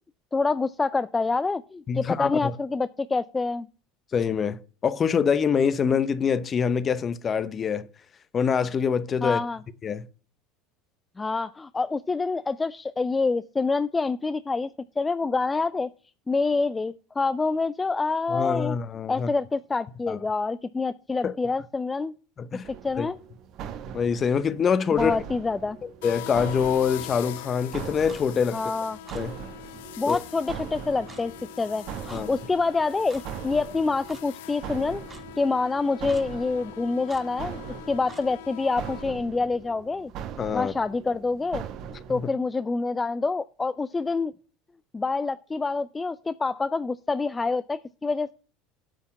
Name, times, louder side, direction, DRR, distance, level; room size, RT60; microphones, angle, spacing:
voice 1, 0.3-3.7 9.2-9.6 11.2-15.9 16.3-18.8 19.1-22.1 22.8-23.2 24.9-25.8 28.5-29.0 30.0-35.0 35.4-37.6 37.9-40.1 40.5-41.6 42.1-44.3 44.9-48.3, left 3 dB, 20° left, 0.4 m, -27 dB
voice 2, 1.9-2.5 4.1-7.9 8.3-9.4 9.8-10.1 18.3-19.3 20.1-20.2 21.2-21.3 22.4-22.7 23.0-23.1 23.9-25.2 25.8-28.6 29.1-29.4 30.1-30.2 32.1-32.3 40.4-40.7 42.1-42.3, left 6 dB, 35° left, 0.8 m, -25 dB
sound 1, 22.6-42.3, right 8 dB, 55° right, 1.0 m, -41 dB
sound 2, 26.0-39.0, left 13 dB, 75° left, 0.5 m, -43 dB
Clock, 28.1-28.2 29.1-29.2 30.1-30.2 31.1-31.2 32.1-32.2 33.1-33.3 34.1-34.2 35.1-35.2 36.1-36.3 37.1-37.2 38.1-38.2, right 4 dB, 25° right, 1.5 m, -46 dB
8.7 x 5.6 x 6.9 m
hypercardioid pair, 75°, 0 cm